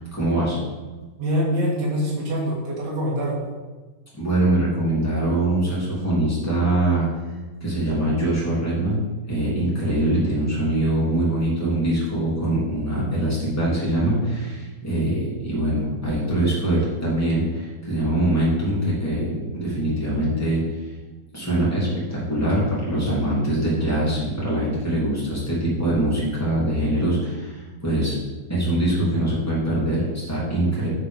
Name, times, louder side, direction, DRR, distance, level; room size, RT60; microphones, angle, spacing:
voice 1, 0.1-0.6 4.2-7.1 7.6-20.8 21.3-28.2 28.5-30.9, right 1 dB, 5° left, -8 dB, 1.9 m, -23 dB
voice 2, 1.2-3.4, equal, 80° right, -4 dB, 4.1 m, -24 dB
9.9 x 4.3 x 5.2 m, 1.3 s
omnidirectional pair, 4.5 m